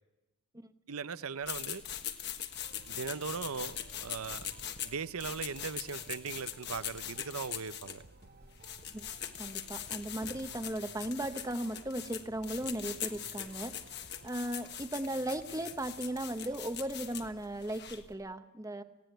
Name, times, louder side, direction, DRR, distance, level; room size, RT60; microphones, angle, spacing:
voice 1, 0.9-1.8 2.8-4.5 4.8-8.0, right 5 dB, 75° right, 0.7 m, -39 dB
sound 1, 1.4-18.1, left 10 dB, 50° left, 1.5 m, -42 dB
sound 2, 2.5-17.3, right 3 dB, 45° right, 0.8 m, -58 dB
voice 2, 9.4-13.7 14.2-18.8, right 1 dB, 15° right, 0.9 m, -37 dB
19.0 x 17.0 x 9.2 m
head